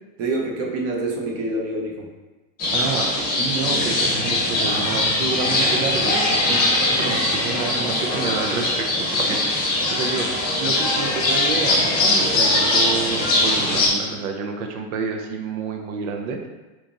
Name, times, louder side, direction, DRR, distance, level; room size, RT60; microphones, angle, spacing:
voice 1, 0.2-2.1, right 2 dB, 35° right, 0 dB, 0.7 m, -26 dB
sound 1, 2.6-13.9, left 2 dB, 20° left, 0.8 m, -21 dB
voice 2, 2.7-6.6 6.9-10.3 10.6-16.5, right 5 dB, 85° right, 3 dB, 0.7 m, -29 dB
3.0 x 2.4 x 3.7 m, 1.2 s
supercardioid pair, 140°, 42 cm